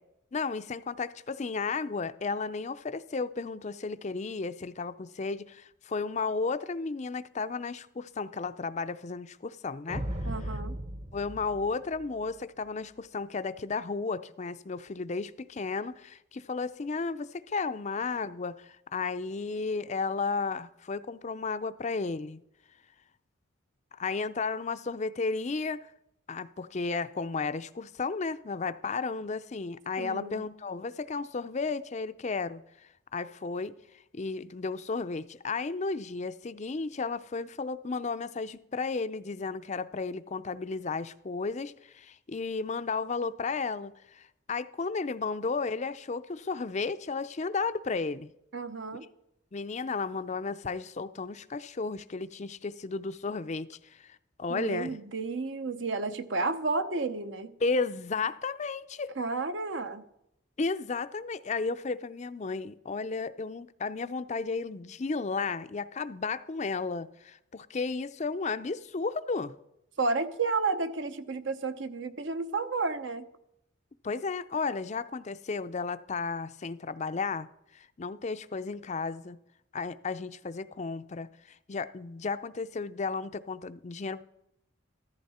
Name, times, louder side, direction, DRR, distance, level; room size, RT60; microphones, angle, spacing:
voice 1, 0.3-10.0 11.1-22.4 23.9-25.9 26.3-32.6 33.1-33.7 34.1-48.3 49.5-55.0 57.6-59.1 60.6-69.5 74.0-77.5 77.7-79.4 79.7-84.2, left 4 dB, 35° left, 0.5 m, -33 dB
sound 1, 9.9-12.4, equal, 35° right, 0.9 m, -36 dB
voice 2, 10.2-10.8 30.0-30.4 48.5-49.1 54.5-57.5 59.2-60.0 70.0-73.3, right 3 dB, 65° right, 0.9 m, -31 dB
14.5 x 14.0 x 4.3 m
head